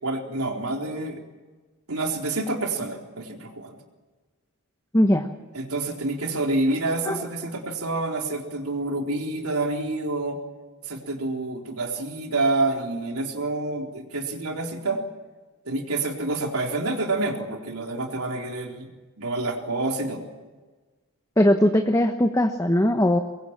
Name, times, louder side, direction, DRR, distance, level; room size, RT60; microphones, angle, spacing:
voice 1, 0.0-1.2 1.9-3.8 5.5-10.4 10.8-15.0 15.7-18.9 19.2-20.2, right 2 dB, 90° right, 2 dB, 3.9 m, -28 dB
voice 2, 4.9-5.3 7.1-7.2 21.4-23.2, left 1 dB, 15° left, 5 dB, 1.1 m, -19 dB
24.0 x 22.0 x 7.4 m, 1.3 s
head